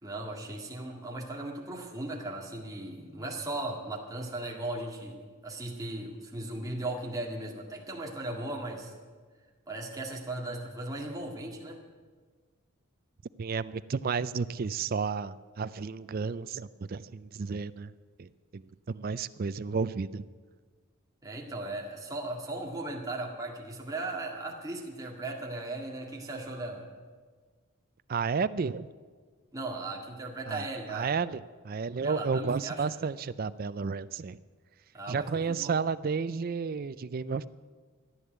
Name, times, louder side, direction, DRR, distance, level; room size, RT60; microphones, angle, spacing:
voice 1, 0.0-8.9 9.7-11.8 21.2-26.9 29.5-31.1 32.0-32.8 34.9-35.7, right 2 dB, 15° right, -1 dB, 1.9 m, -37 dB
voice 2, 13.4-17.9 18.2-20.3 28.1-28.9 30.5-34.4 35.1-37.5, right 5 dB, 40° right, 15 dB, 0.4 m, -32 dB
14.0 x 9.9 x 7.9 m, 1.5 s
head